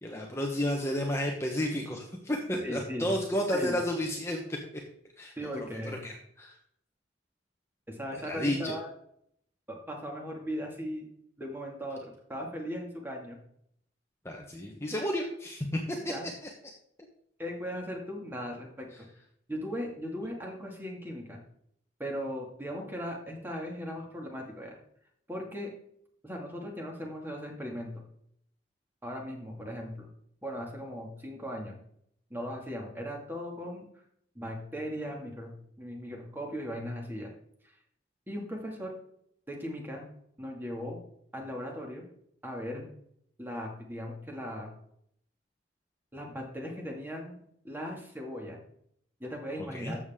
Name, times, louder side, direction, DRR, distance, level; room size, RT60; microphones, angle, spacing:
voice 1, 0.0-4.6 5.2-5.3 5.8-6.6 8.1-8.7 14.2-16.1 49.6-49.9, left 1 dB, 15° left, 1 dB, 1.1 m, -32 dB
voice 2, 2.6-3.1 3.5-3.8 5.4-6.0 7.9-8.9 9.7-11.1 11.4-13.4 16.0-16.3 17.4-19.0 19.5-21.4 22.0-24.8 25.3-25.7 26.2-28.0 29.0-30.1 30.4-31.8 32.3-33.8 34.3-37.3 38.3-38.9 39.5-40.0 40.4-41.0 41.3-42.1 42.4-42.8 43.4-44.7 46.1-48.6 49.2-50.0, equal, 10° right, 0 dB, 2.2 m, -38 dB
13.0 x 7.4 x 3.7 m, 0.71 s
head